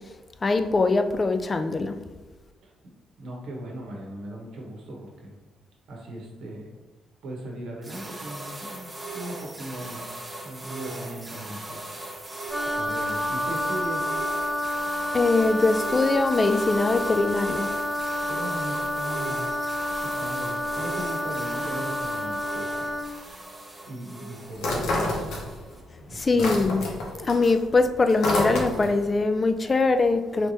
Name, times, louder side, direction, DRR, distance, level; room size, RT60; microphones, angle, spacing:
voice 1, 0.4-2.0 15.1-17.7 26.1-26.9 27.1-30.5, left 3 dB, 30° left, 8 dB, 0.3 m, -22 dB
voice 2, 2.6-2.9 3.2-5.3 5.9-6.7 7.2-8.9 9.1-10.1 10.4-11.8 12.7-14.1 18.2-19.5 20.0-22.9 23.8-25.4 26.0-26.6, right 1 dB, 75° right, -1 dB, 0.9 m, -38 dB
sound 1, 7.8-25.8, right 2 dB, 20° right, 0.6 m, -39 dB
Wind instrument woodwind instrument, 12.5-23.1, left 1 dB, 10° left, 0.9 m, -29 dB
sound 2, 24.6-25.8 26.1-29.0, left 1 dB, 80° left, 0.8 m, -28 dB
3.3 x 3.1 x 2.7 m, 1.2 s
cardioid pair, 90°, 0 cm